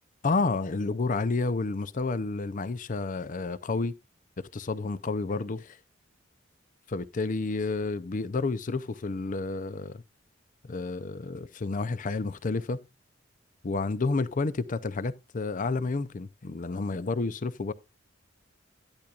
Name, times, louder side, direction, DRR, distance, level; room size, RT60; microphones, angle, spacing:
voice 1, 0.2-4.0 4.4-5.8 6.9-10.0 10.6-12.9 13.6-17.7, left 3 dB, 40° left, 0.5 m, -30 dB
11.5 x 10.5 x 2.4 m
head